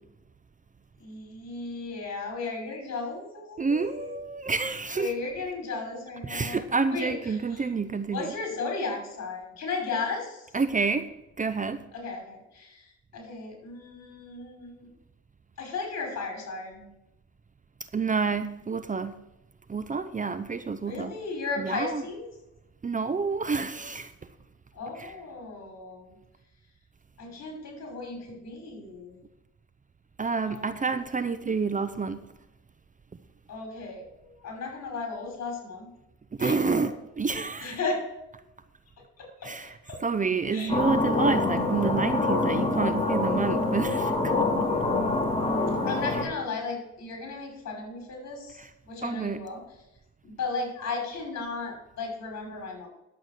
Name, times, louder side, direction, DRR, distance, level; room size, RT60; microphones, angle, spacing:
voice 1, 1.0-4.2 4.9-7.6 8.1-10.4 11.9-12.9 13.1-14.9 15.6-16.9 20.8-22.2 24.7-26.1 27.2-29.2 30.4-30.9 33.5-35.9 36.4-36.9 37.6-38.0 39.2-39.5 39.9-40.0 40.5-40.7 45.8-49.6 50.2-52.9, left 4 dB, 60° left, 5.6 m, -35 dB
voice 2, 3.6-5.1 6.2-8.3 10.5-11.1 11.4-11.8 17.9-19.2 19.7-21.2 21.6-22.0 22.8-24.1 25.0-25.1 30.2-32.2 36.3-37.8 39.4-39.7 40.0-44.7 48.6-48.7 49.0-49.4, right 4 dB, 25° right, 0.7 m, -29 dB
sound 1, 40.7-46.2, left 2 dB, 20° left, 2.7 m, -26 dB
11.0 x 8.0 x 6.6 m
cardioid pair, 90°, 30 cm